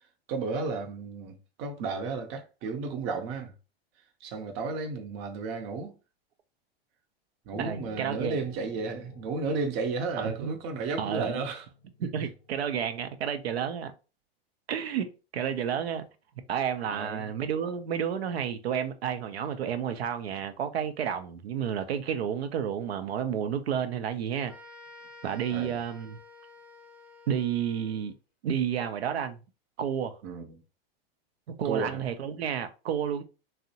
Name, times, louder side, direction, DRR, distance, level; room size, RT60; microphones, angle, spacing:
voice 1, 0.3-3.5 4.2-5.9 7.5-11.7 12.2-12.3 16.9-17.2 25.5-25.8 30.2-30.6 31.6-32.0, right 4 dB, 40° right, 0.6 m, -33 dB
Piano, 7.5-12.8, left 8 dB, 40° left, 0.5 m, -51 dB
voice 2, 7.6-8.4 10.2-10.6 11.0-11.4 12.0-13.9 14.7-16.1 16.5-24.5 25.2-26.2 27.3-28.1 28.4-29.4 29.8-30.2 31.5-33.2, right 8 dB, 85° right, 0.5 m, -31 dB
sound 1, 24.5-28.1, left 3 dB, 5° right, 0.6 m, -51 dB
2.6 x 2.0 x 2.7 m
hypercardioid pair, 110°, 30 cm